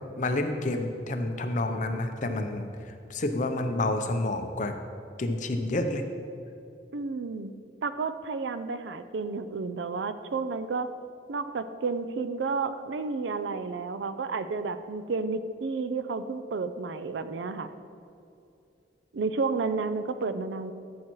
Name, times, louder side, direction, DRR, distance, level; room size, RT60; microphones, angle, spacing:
voice 1, 0.2-4.8 5.2-6.1, left 2 dB, 45° left, 6 dB, 0.6 m, -29 dB
voice 2, 6.9-7.5 7.8-10.9 11.3-17.7 19.1-20.7, right 4 dB, 75° right, 11 dB, 0.4 m, -31 dB
13.5 x 7.3 x 3.1 m, 2.6 s
head